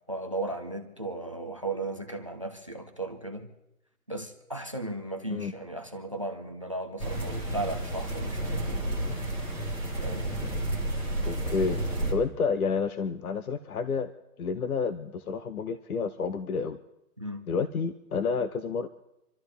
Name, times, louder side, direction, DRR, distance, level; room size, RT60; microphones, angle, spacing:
voice 1, 0.1-3.5 4.1-8.8 10.0-10.3 17.2-17.4, right 2 dB, 20° right, 8 dB, 0.5 m, -36 dB
sound 1, 7.0-12.1, right 1 dB, 10° left, 1.6 m, -31 dB
voice 2, 11.2-11.8 12.1-14.1 14.4-16.8 17.5-18.9, left 5 dB, 65° left, 11 dB, 0.9 m, -29 dB
27.0 x 12.5 x 3.4 m, 0.90 s
hypercardioid pair, 165°, 46 cm